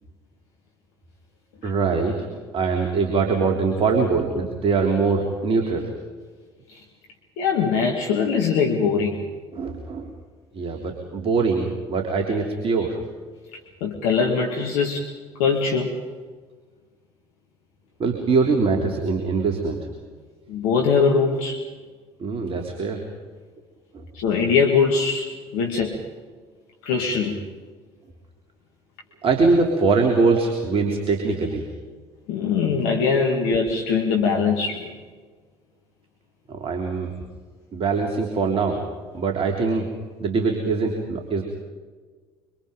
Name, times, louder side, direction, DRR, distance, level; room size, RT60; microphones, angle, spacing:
voice 1, 1.6-2.3 2.5-5.9 9.5-10.1 10.5-13.0 18.0-19.8 22.2-23.0 23.9-24.0 29.2-31.7 36.5-37.1 37.7-38.9 39.1-39.9 40.2-41.4, right 4 dB, 40° right, 3 dB, 3.3 m, -22 dB
voice 2, 7.4-9.2 13.8-15.1 15.4-16.0 20.5-21.6 24.1-26.0 26.8-27.4 32.3-34.9, left 5 dB, 65° left, 1 dB, 2.4 m, -22 dB
26.5 x 25.0 x 5.2 m, 1.5 s
figure-of-eight pair, 55°, 14 cm